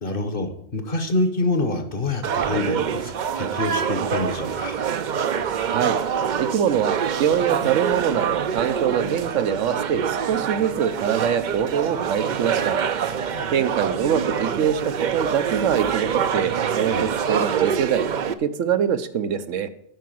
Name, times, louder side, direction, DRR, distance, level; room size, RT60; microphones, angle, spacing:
voice 1, 0.0-4.8 13.2-13.5 16.9-17.1, left 2 dB, 50° left, 8 dB, 1.2 m, -26 dB
sound 1, 2.2-18.3, right 7 dB, 55° right, 0.5 m, -25 dB
voice 2, 5.6-6.0 6.3-12.8 13.5-14.8 15.1-19.7, right 8 dB, 85° right, 10 dB, 1.1 m, -24 dB
10.0 x 4.7 x 7.6 m, 0.70 s
omnidirectional pair, 1.3 m